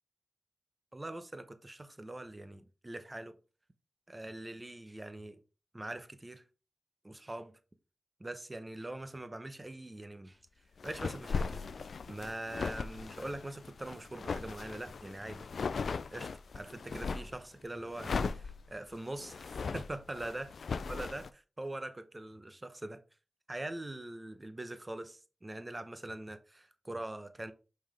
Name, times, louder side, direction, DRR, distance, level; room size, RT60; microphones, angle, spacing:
voice 1, 0.9-3.4 4.1-5.4 5.7-6.4 7.0-7.5 8.2-10.4 10.8-11.7 12.1-15.5 15.7-20.5 20.9-23.0 23.5-27.5, right 1 dB, 25° right, 0.8 m, -43 dB
sound 1, 10.8-17.4 17.9-21.3, left 5 dB, 80° left, 0.3 m, -38 dB
5.5 x 5.5 x 3.4 m
wide cardioid pair, 100°, 0 cm